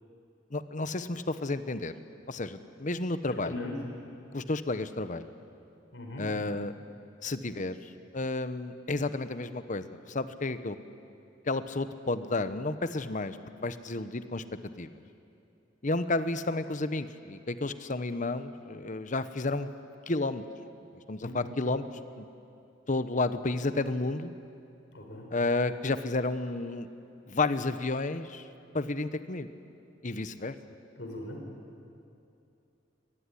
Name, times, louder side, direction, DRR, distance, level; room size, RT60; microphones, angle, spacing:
voice 1, 0.5-1.9 2.3-3.6 4.3-5.3 6.2-6.7 7.2-10.8 11.4-14.4 14.8-14.9 15.8-19.7 20.1-20.4 21.1-21.9 22.2-22.3 22.9-24.3 25.3-26.9 27.3-28.5 28.7-29.5 30.0-30.5, left 2 dB, 40° left, 11 dB, 1.0 m, -31 dB
voice 2, 3.4-3.8 5.9-6.2 21.2-21.5 24.9-25.3 31.0-31.4, left 2 dB, 70° left, 1 dB, 4.8 m, -39 dB
24.5 x 19.0 x 9.9 m, 2.6 s
head